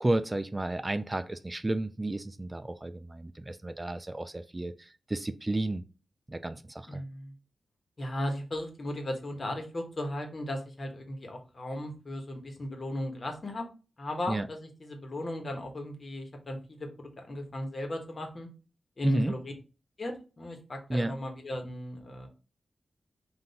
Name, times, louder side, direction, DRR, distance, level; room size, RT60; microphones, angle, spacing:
voice 1, 0.0-5.8 6.3-7.0 14.3-14.5 19.0-19.3 20.9-21.1, right 2 dB, 25° right, 11 dB, 0.4 m, -32 dB
voice 2, 6.9-7.3 8.0-13.7 14.0-18.5 19.0-19.5 20.0-22.3, left 1 dB, 55° left, 3 dB, 1.2 m, -36 dB
3.8 x 2.6 x 4.1 m, 0.34 s
cardioid pair, 45°, 0 cm